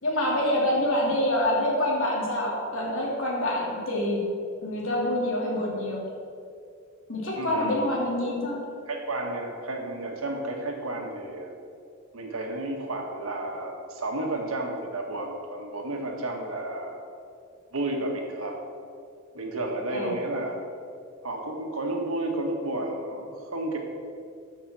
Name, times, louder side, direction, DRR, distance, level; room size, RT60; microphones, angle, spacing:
voice 1, 0.0-4.2 4.6-6.0 7.1-8.6 19.9-20.1, left 1 dB, 70° left, -4 dB, 2.7 m, -26 dB
voice 2, 7.4-7.8 8.9-11.5 12.1-17.0 17.7-18.6 19.3-20.6 21.2-23.8, right 2 dB, 90° right, 1 dB, 1.6 m, -32 dB
13.5 x 6.1 x 4.3 m, 2.4 s
head